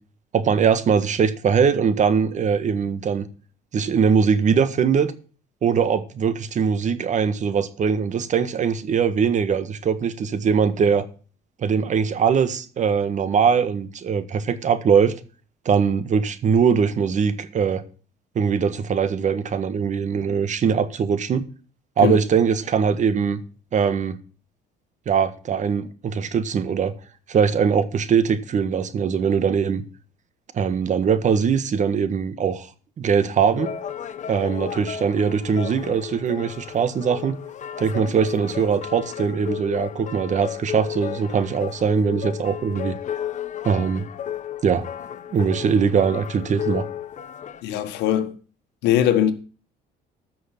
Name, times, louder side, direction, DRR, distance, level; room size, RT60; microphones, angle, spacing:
voice 1, 0.3-3.3 3.7-5.1 5.6-11.0 11.6-15.1 15.6-17.8 18.3-21.4 22.0-23.4 23.7-24.2 25.0-26.9 27.3-29.8 30.5-32.7 33.0-33.7 34.3-37.4 37.8-43.0 43.6-44.0 44.6-44.8 45.3-46.8, right 6 dB, 45° right, 1.6 m, -21 dB
sound 1, 33.5-47.6, left 10 dB, 45° left, 1.3 m, -33 dB
voice 2, 47.6-48.3 48.8-49.3, left 11 dB, 85° left, 1.6 m, -20 dB
14.0 x 6.4 x 6.0 m
cardioid pair, 110°, 17 cm